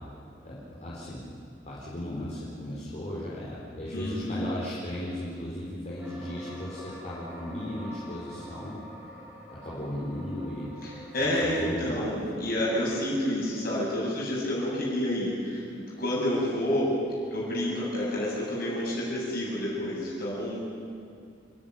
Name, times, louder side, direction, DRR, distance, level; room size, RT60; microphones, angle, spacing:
voice 1, 0.4-1.3 1.6-8.8 9.6-10.7 11.2-12.1, left 1 dB, 40° left, -7 dB, 4.3 m, -36 dB
voice 2, 3.9-4.5 10.8-16.9 17.3-20.6, left 1 dB, 55° left, -6 dB, 7.2 m, -29 dB
sound 1, 6.0-11.4, equal, 10° right, 6.2 m, -46 dB
29.0 x 14.5 x 9.2 m, 2.3 s
head